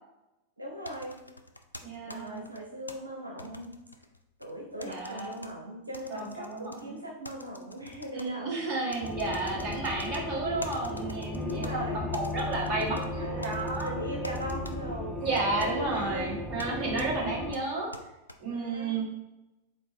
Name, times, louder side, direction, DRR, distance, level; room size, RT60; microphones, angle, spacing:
voice 1, 0.6-1.1 2.0-3.7 4.4-8.5 11.4-12.0 13.2-13.6 13.8-16.4 18.5-18.9, equal, 85° right, -2 dB, 0.8 m, -39 dB
sound 1, 0.8-2.9 3.4-4.5 4.8-5.5 5.9-6.8 7.2-8.3 8.9-10.2 10.6-11.7 12.1-13.1 13.4-13.9 14.2-14.7 15.3-15.7 16.6-16.7 17.0-17.1 17.5-18.4, left 2 dB, 85° left, 0.3 m, -46 dB
voice 2, 1.8-2.4 4.8-5.4 6.1-7.0 8.1-13.9 15.2-17.9 18.4-19.1, right 3 dB, 35° right, -2 dB, 1.5 m, -32 dB
sound 2, 9.0-17.6, left 2 dB, ahead, 0.5 m, -36 dB
4.4 x 4.0 x 3.0 m, 0.95 s
figure-of-eight pair, 90°, 0 cm